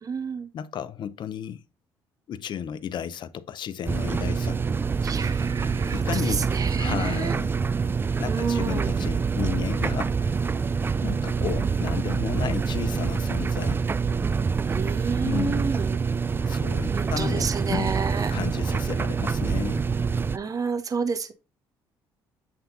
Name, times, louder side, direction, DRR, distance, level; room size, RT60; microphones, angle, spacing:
voice 1, 0.0-0.5 5.0-7.3 8.2-8.9 14.7-16.0 16.9-18.4 20.3-21.3, right 5 dB, 40° right, 1.1 m, -30 dB
voice 2, 0.5-1.6 2.3-4.6 5.9-6.5 6.8-7.5 8.2-10.3 11.0-13.8 15.2-15.7 16.5-17.9 18.3-19.8, left 9 dB, 55° left, 0.7 m, -33 dB
sound 1, 3.9-20.4, right 5 dB, 25° right, 0.3 m, -26 dB
7.5 x 3.5 x 3.9 m
supercardioid pair, 75°, 9 cm